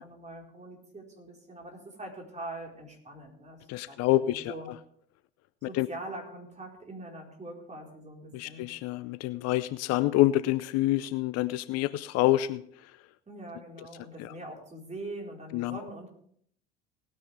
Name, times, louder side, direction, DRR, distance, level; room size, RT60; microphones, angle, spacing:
voice 1, 0.0-4.7 5.6-8.7 13.3-16.1, right 2 dB, 25° right, 0 dB, 4.4 m, -43 dB
voice 2, 3.7-4.5 5.7-5.9 8.3-12.6 14.2-14.3 15.5-15.8, left 16 dB, 55° left, 16 dB, 0.6 m, -27 dB
18.5 x 9.7 x 3.4 m, 0.64 s
hypercardioid pair, 65°, 30 cm